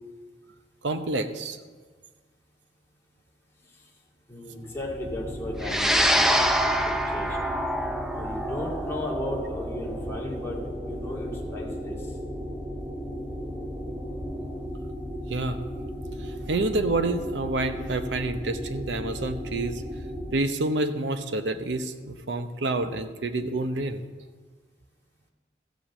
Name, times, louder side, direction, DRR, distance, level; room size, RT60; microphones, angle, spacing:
voice 1, 0.8-1.6 15.3-15.6 16.2-19.8 20.3-24.0, right 2 dB, 85° right, 9 dB, 0.8 m, -28 dB
voice 2, 4.3-6.4 6.6-7.4 8.1-10.6 10.9-12.0, left 1 dB, 15° left, -4 dB, 2.2 m, -35 dB
sound 1, 4.5-20.3, equal, 50° right, 3.6 m, -35 dB
sound 2, 5.6-14.2, equal, 5° right, 0.6 m, -27 dB
14.5 x 5.1 x 7.3 m, 1.4 s
head